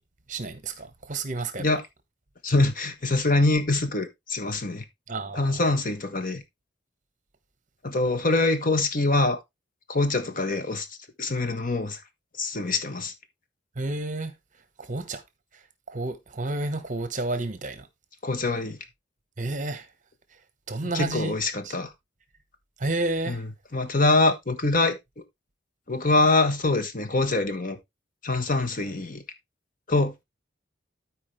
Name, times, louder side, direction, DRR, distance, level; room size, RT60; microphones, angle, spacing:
voice 1, 0.3-1.7 5.1-5.6 13.8-14.3 14.8-15.2 15.9-17.9 19.4-19.9 20.7-21.3 21.6-21.7 22.8-23.4, right 2 dB, 40° right, 1.2 m, -30 dB
voice 2, 2.4-4.8 5.3-6.4 7.8-9.4 9.9-10.9 11.2-12.0 12.4-13.1 18.2-18.8 20.8-21.9 23.3-23.5 23.7-25.2 25.9-27.8 28.2-29.2 29.9-30.1, left 2 dB, 45° left, 1.3 m, -24 dB
13.0 x 4.7 x 3.2 m
head